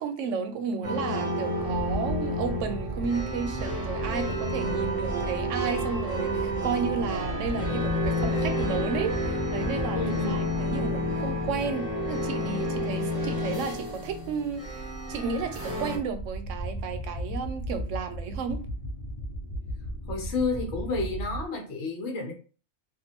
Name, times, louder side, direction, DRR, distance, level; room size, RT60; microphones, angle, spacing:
voice 1, 0.0-10.0 10.3-14.8 15.1-18.6, right 5 dB, 75° right, 0.9 m, -33 dB
sound 1, 0.8-16.0, left 1 dB, 30° right, 1.0 m, -30 dB
sound 2, 1.6-21.4, right 1 dB, 45° left, 0.9 m, -37 dB
voice 2, 9.9-10.6 20.1-22.3, left 3 dB, 60° left, 1.2 m, -31 dB
3.4 x 2.5 x 2.8 m
omnidirectional pair, 1.3 m